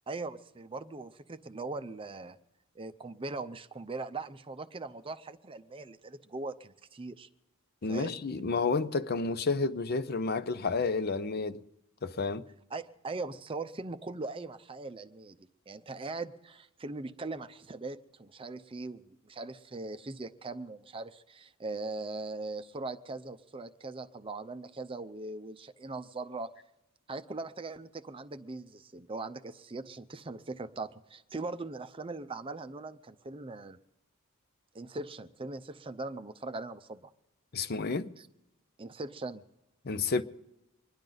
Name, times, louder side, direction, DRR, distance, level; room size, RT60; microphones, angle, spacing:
voice 1, 0.1-2.4 2.8-7.3 7.9-8.2 12.7-15.4 15.7-26.5 27.1-33.8 34.7-37.1 38.2-38.3 38.8-39.4, right 3 dB, 25° right, 0.5 m, -40 dB
voice 2, 7.8-11.6 12.0-12.5 37.5-38.1 39.8-40.2, left 4 dB, 45° left, 0.6 m, -30 dB
25.0 x 10.5 x 3.9 m
head